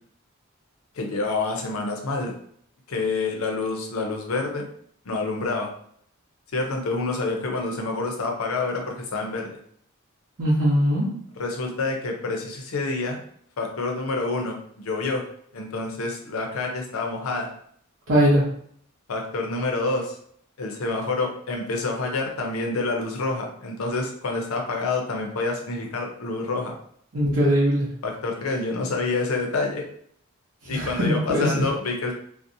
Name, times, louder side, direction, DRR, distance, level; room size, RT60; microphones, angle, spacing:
voice 1, 0.9-2.3 2.9-4.7 5.0-5.7 6.5-9.6 11.4-13.2 13.6-15.2 15.5-17.5 19.1-20.2 20.6-26.7 28.0-29.8 30.7-32.1, left 3 dB, 80° left, 2 dB, 0.6 m, -27 dB
voice 2, 10.4-11.1 18.1-18.5 27.1-27.9 30.6-31.6, equal, 65° right, -8 dB, 0.8 m, -21 dB
2.6 x 2.0 x 2.6 m, 0.65 s
head